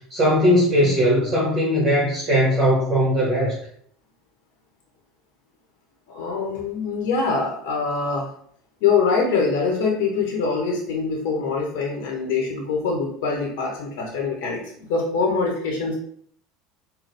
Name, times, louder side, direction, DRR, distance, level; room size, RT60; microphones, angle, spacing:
voice 1, 0.1-3.5, equal, 35° right, -7 dB, 1.4 m, -19 dB
voice 2, 6.1-8.3 8.8-15.9, left 4 dB, 65° left, 0 dB, 0.9 m, -24 dB
3.9 x 2.3 x 3.4 m, 0.63 s
hypercardioid pair, 75°, 0 cm